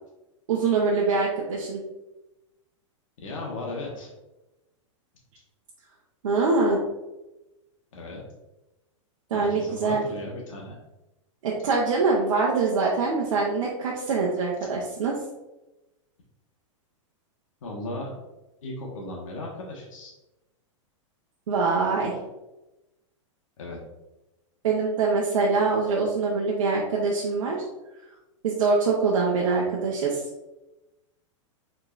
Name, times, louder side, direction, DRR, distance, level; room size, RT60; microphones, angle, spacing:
voice 1, 0.5-1.8 6.2-6.8 9.3-10.0 11.4-15.2 21.5-22.2 24.6-27.6 28.4-30.2, right 4 dB, 80° right, -3 dB, 0.8 m, -24 dB
voice 2, 3.2-4.1 7.9-8.2 9.3-10.8 17.6-18.1 18.6-20.1 23.6-23.8, left 2 dB, 85° left, -2 dB, 1.2 m, -36 dB
4.8 x 3.8 x 2.5 m, 0.99 s
hypercardioid pair, 135°, 16 cm